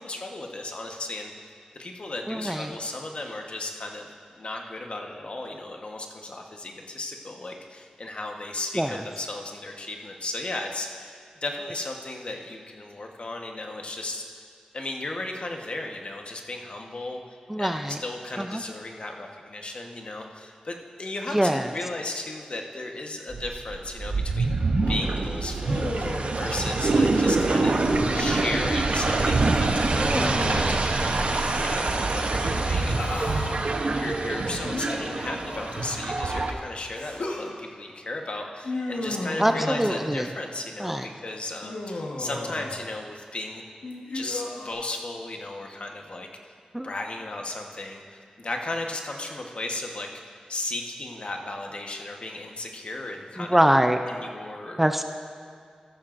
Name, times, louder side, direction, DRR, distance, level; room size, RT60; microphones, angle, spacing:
voice 1, 0.0-1.5 1.8-4.1 4.3-11.1 11.4-14.4 14.7-17.2 17.6-24.5 24.9-33.6 33.8-43.6 44.1-46.5 46.8-53.6 54.1-54.8, left 2 dB, 50° left, 2 dB, 1.1 m, -35 dB
voice 2, 2.3-2.7 8.7-9.0 17.5-18.0 18.4-18.6 21.3-21.7 30.0-30.5 33.8-34.0 39.4-40.3 40.8-41.1 46.7-46.9 53.4-54.0 54.8-55.0, equal, 10° right, 6 dB, 0.4 m, -24 dB
sound 1, 23.3-36.5, right 3 dB, 60° right, 0.8 m, -25 dB
Human voice, 25.7-26.5 27.9-28.6 30.1-30.9 32.5-33.6 34.7-36.2 37.0-37.5 38.6-40.2 41.6-42.8 43.8-44.7, left 2 dB, 75° left, 1.3 m, -34 dB
14.0 x 13.5 x 2.6 m, 2.3 s
wide cardioid pair, 80°, 2 cm